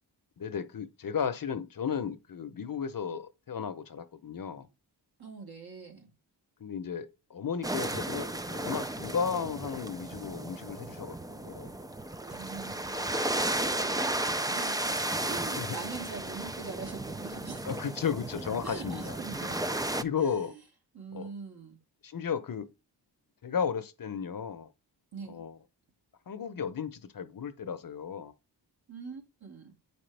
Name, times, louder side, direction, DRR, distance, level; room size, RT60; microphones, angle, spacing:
voice 1, 0.4-4.7 6.6-11.7 13.8-14.1 15.2-15.8 17.7-19.2 20.0-20.6 21.1-21.3 22.0-22.7 23.4-24.7 25.3-25.6 26.3-28.3, left 7 dB, 50° left, 0.8 m, -34 dB
voice 2, 5.2-6.1 12.3-17.9 18.6-19.8 20.2-20.6 20.9-21.8 25.1-25.4 28.9-29.7, right 4 dB, 60° right, 2.5 m, -44 dB
sound 1, 7.6-20.0, right 1 dB, 10° right, 0.4 m, -34 dB
8.3 x 5.1 x 3.4 m
wide cardioid pair, 95°, 42 cm